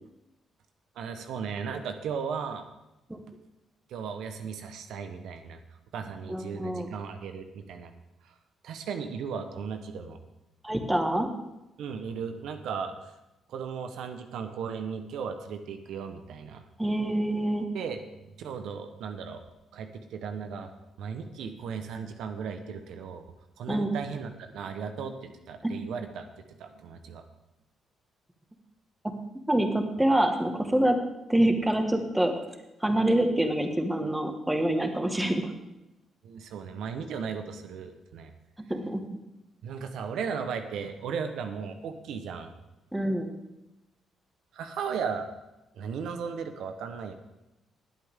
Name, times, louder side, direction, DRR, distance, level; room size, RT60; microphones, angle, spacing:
voice 1, 0.9-2.6 3.9-5.6 5.9-7.9 8.2-8.3 8.6-10.2 11.8-12.9 13.5-16.6 17.7-18.0 18.4-19.4 19.7-20.7 21.0-23.2 23.6-26.3 26.6-27.3 36.2-38.3 39.6-42.5 44.5-45.3 45.8-47.1, right 6 dB, 80° right, 7 dB, 1.1 m, -36 dB
voice 2, 6.3-6.9 10.6-11.3 16.8-17.7 23.7-23.9 25.6-25.7 29.5-31.0 31.3-32.3 32.8-35.5 38.7-39.0 42.9-43.3, right 1 dB, 10° right, 5 dB, 1.7 m, -26 dB
19.5 x 8.3 x 3.7 m, 0.96 s
cardioid pair, 90°, 0 cm